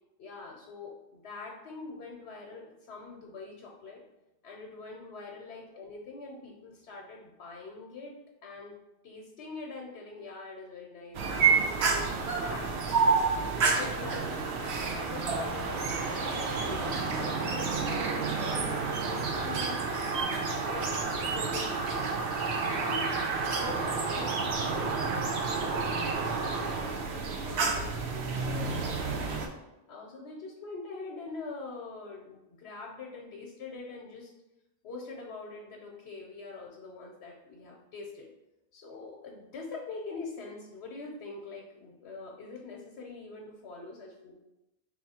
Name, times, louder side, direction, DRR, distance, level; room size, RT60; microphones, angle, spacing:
voice 1, 0.2-4.0 4.4-8.1 8.4-8.7 9.0-11.7 12.2-12.7 13.4-14.5 14.8-19.8 20.5-22.1 22.6-29.2 29.9-34.3 34.8-38.3 38.7-44.3, left 3 dB, 85° left, -1 dB, 1.0 m, -44 dB
sound 1, 11.1-29.5, right 4 dB, 85° right, 0.9 m, -29 dB
3.4 x 3.0 x 4.1 m, 0.96 s
omnidirectional pair, 1.1 m